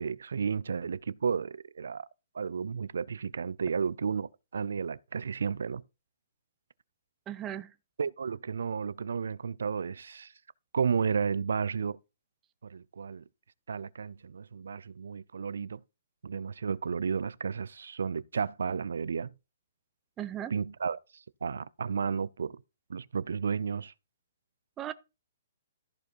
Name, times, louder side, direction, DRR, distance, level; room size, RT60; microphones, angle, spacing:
voice 1, 0.0-2.1 2.3-5.8 8.0-10.3 10.7-12.0 12.6-13.2 13.7-15.8 16.2-19.3 20.5-22.6 22.9-23.9, right 6 dB, 80° right, 0.5 m, -32 dB
voice 2, 7.3-7.7 20.2-20.5 24.8-24.9, right 11 dB, 20° right, 0.8 m, -36 dB
14.0 x 4.8 x 4.6 m
hypercardioid pair, 145°, 0 cm